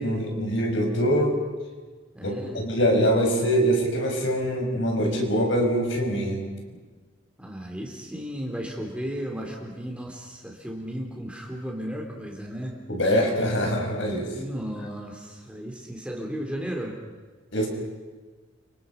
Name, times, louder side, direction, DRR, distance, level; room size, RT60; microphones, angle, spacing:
voice 1, 0.0-1.3 2.2-6.5 12.9-14.3 17.5-17.7, equal, 65° left, 1 dB, 6.3 m, -24 dB
voice 2, 2.1-2.6 7.4-12.8 14.3-17.0, equal, 5° right, 0 dB, 4.0 m, -34 dB
30.0 x 27.0 x 5.6 m, 1.3 s
head